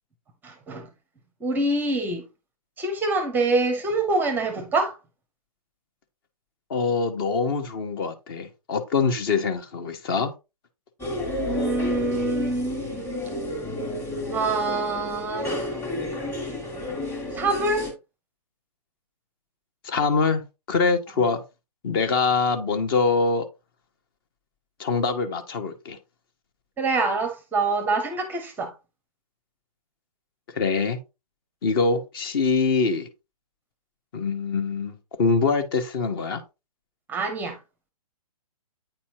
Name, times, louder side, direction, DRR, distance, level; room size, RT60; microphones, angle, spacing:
voice 1, 0.4-0.9 1.4-2.2 2.8-4.9 11.4-12.8 14.3-15.7 17.4-17.9 26.8-28.7 37.1-37.6, right 2 dB, 10° right, 0.7 m, -25 dB
voice 2, 6.7-10.3 19.8-20.4 20.7-21.4 21.8-23.4 24.8-26.0 30.5-31.0 31.6-33.1 34.1-36.4, left 4 dB, 35° left, 1.1 m, -24 dB
sound 1, 11.0-17.9, left 1 dB, 10° left, 1.6 m, -31 dB
8.9 x 4.2 x 2.8 m
figure-of-eight pair, 125°, 20 cm